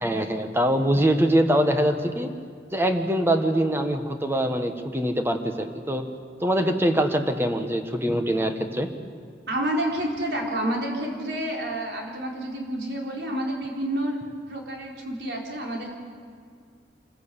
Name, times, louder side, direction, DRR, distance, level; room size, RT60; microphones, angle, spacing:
voice 1, 0.0-2.3 2.7-6.0 6.4-8.9, equal, 15° right, 6 dB, 1.4 m, -23 dB
voice 2, 9.5-14.2 14.5-15.9, right 1 dB, 70° right, -1 dB, 4.2 m, -29 dB
26.0 x 15.0 x 8.5 m, 2.1 s
head